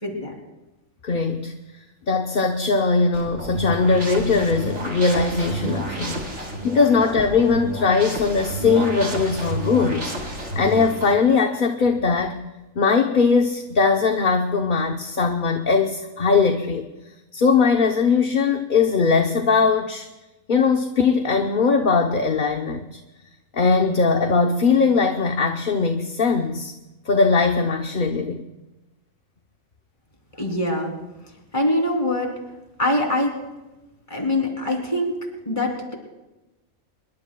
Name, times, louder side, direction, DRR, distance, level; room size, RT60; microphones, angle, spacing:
voice 1, 0.0-0.4 6.3-6.5 30.4-31.0 31.5-32.3 32.8-33.3 34.1-35.2 35.4-35.9, left 1 dB, 25° left, 0 dB, 3.3 m, -23 dB
voice 2, 1.0-1.6 2.1-12.4 12.8-16.9 17.3-20.1 20.5-23.0 23.5-26.7 27.0-28.4, left 4 dB, 45° left, 4 dB, 1.0 m, -20 dB
sound 1, 3.1-11.1, right 1 dB, 60° right, 3.1 m, -30 dB
25.5 x 22.5 x 2.3 m, 1.0 s
omnidirectional pair, 1.3 m